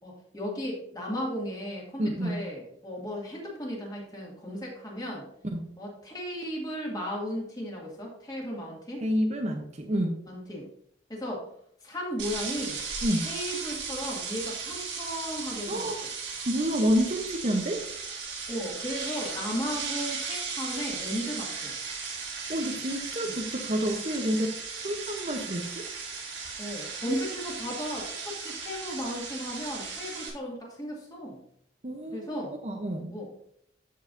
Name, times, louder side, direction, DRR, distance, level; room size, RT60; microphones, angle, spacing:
voice 1, 0.0-5.3 5.8-9.0 10.3-10.7 11.1-11.5 11.8-12.8 13.2-15.9 18.5-21.7 26.6-31.4 32.1-32.6 33.1-33.3, equal, 20° left, -3 dB, 2.2 m, -35 dB
voice 2, 2.0-2.4 5.5-5.6 9.0-10.2 13.0-13.3 15.7-16.0 16.5-17.8 22.5-24.5 24.8-25.8 31.8-33.1, equal, 40° right, 3 dB, 0.9 m, -29 dB
sound 1, 12.2-30.3, right 5 dB, 70° right, 2.4 m, -36 dB
14.0 x 4.7 x 2.7 m, 0.68 s
head